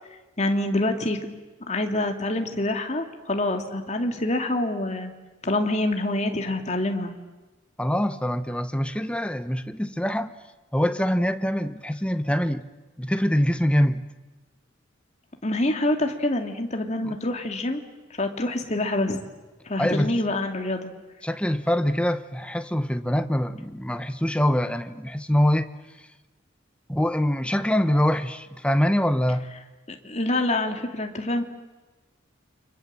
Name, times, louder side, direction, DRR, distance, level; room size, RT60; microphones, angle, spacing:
voice 1, 0.4-1.2 1.7-5.1 5.4-7.1 15.4-17.8 18.2-19.3 19.7-20.9 29.9-31.4, left 1 dB, 35° left, 2.4 m, -26 dB
voice 2, 7.8-10.3 10.7-12.6 13.0-14.0 17.0-17.1 19.8-20.1 21.2-25.7 26.0-26.1 26.9-29.5, equal, 5° left, 0.9 m, -24 dB
29.5 x 25.5 x 7.6 m
head